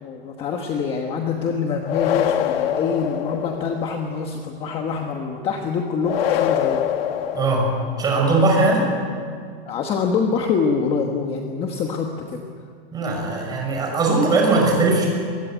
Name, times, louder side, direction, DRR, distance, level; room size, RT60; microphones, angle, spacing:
voice 1, 0.0-6.8 9.6-12.4, left 5 dB, 20° left, 3 dB, 1.2 m, -25 dB
sound 1, 1.9-3.9 6.0-8.1, left 10 dB, 70° left, 1.8 m, -24 dB
voice 2, 7.3-7.7 8.0-8.8 12.9-15.1, right 3 dB, 15° right, -1 dB, 5.8 m, -19 dB
22.5 x 22.5 x 8.9 m, 2.1 s
supercardioid pair, 175°, 30 cm